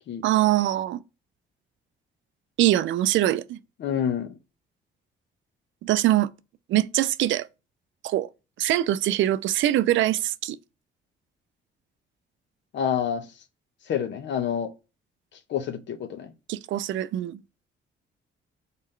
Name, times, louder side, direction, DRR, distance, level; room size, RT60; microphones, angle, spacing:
voice 1, 0.2-1.0 2.6-3.6 5.8-6.3 6.7-7.5 8.0-8.3 8.6-10.6 16.5-17.4, right 14 dB, 75° right, 0.4 m, -23 dB
voice 2, 3.8-4.4 12.7-13.3 13.9-14.7 15.5-16.3, left 8 dB, 65° left, 0.8 m, -28 dB
4.1 x 3.7 x 3.2 m
cardioid pair, 90°, 20 cm